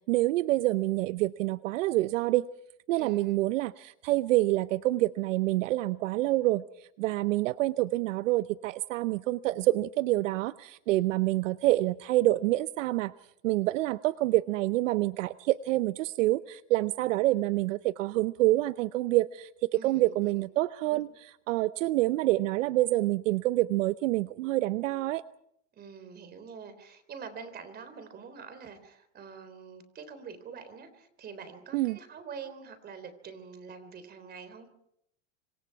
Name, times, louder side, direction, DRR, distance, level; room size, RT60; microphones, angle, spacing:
voice 1, 0.1-2.5 2.9-6.6 7.0-13.1 13.4-21.1 21.5-25.2 31.7-32.0, right 17 dB, 75° right, 15 dB, 0.7 m, -27 dB
voice 2, 3.0-3.5 19.7-20.5 20.9-21.0 25.7-34.7, right 6 dB, 25° right, 11 dB, 3.7 m, -45 dB
26.5 x 25.0 x 4.7 m, 0.72 s
supercardioid pair, 145°, 38 cm